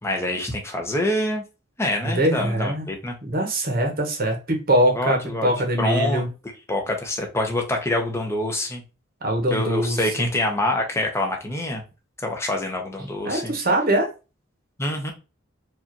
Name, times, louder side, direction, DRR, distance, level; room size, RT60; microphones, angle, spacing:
voice 1, 0.0-1.4 1.8-3.1 4.9-5.5 5.8-6.2 6.7-8.8 9.5-11.8 12.2-13.5 14.8-15.1, left 1 dB, 15° left, 2 dB, 1.0 m, -26 dB
voice 2, 2.0-2.9 3.2-6.3 9.2-10.3 13.2-14.1, right 1 dB, 45° right, 3 dB, 1.2 m, -22 dB
4.8 x 2.7 x 3.0 m, 0.30 s
head